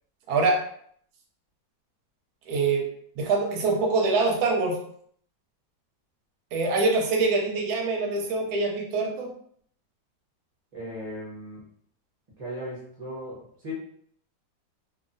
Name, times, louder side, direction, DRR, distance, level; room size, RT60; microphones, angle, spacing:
voice 1, 0.3-0.6 2.5-2.8 3.2-4.8 6.5-9.3, right 3 dB, 70° right, 0 dB, 1.0 m, -24 dB
voice 2, 10.7-11.6 12.4-13.7, equal, 45° right, -5 dB, 0.5 m, -37 dB
2.9 x 2.4 x 2.5 m, 0.64 s
omnidirectional pair, 1.9 m